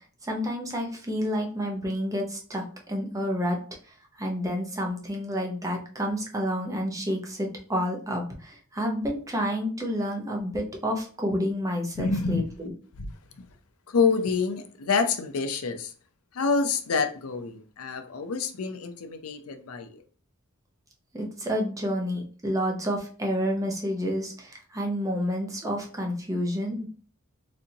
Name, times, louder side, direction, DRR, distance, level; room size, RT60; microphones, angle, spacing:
voice 1, 0.2-3.6 4.2-12.7 21.1-26.9, equal, 15° right, 1 dB, 0.7 m, -29 dB
voice 2, 11.9-12.5 13.0-13.1 13.4-13.5 13.9-15.9 16.3-20.0, left 4 dB, 85° left, 8 dB, 0.5 m, -27 dB
4.2 x 2.6 x 2.8 m, 0.41 s
head